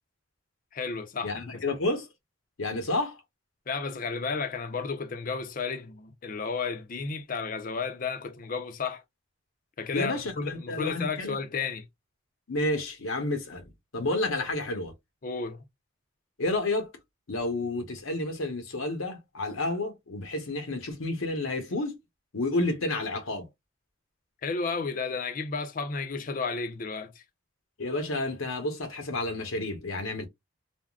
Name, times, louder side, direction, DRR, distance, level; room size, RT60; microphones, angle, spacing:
voice 1, 0.7-1.6 3.7-9.0 9.8-11.9 15.2-15.6 24.4-27.2, left 4 dB, 40° left, 0.5 m, -33 dB
voice 2, 1.2-2.1 2.6-3.2 9.9-11.4 12.5-14.9 16.4-16.9 17.3-22.0 22.3-23.5 27.8-30.3, left 2 dB, 90° left, 0.9 m, -30 dB
3.5 x 2.1 x 2.3 m
head